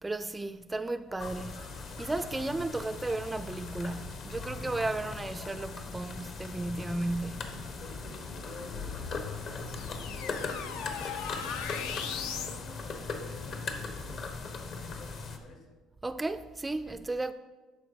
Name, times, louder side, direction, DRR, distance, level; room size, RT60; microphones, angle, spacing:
voice 1, 0.0-1.6 2.0-7.5 16.0-17.3, right 2 dB, 10° right, 0.3 m, -34 dB
sound 1, 1.2-15.4, left 4 dB, 50° left, 1.1 m, -39 dB
voice 2, 7.8-15.7, left 3 dB, 65° left, 2.3 m, -51 dB
sound 2, 8.7-12.6, left 7 dB, 80° left, 0.7 m, -38 dB
13.0 x 4.6 x 5.0 m
cardioid pair, 120°, 0 cm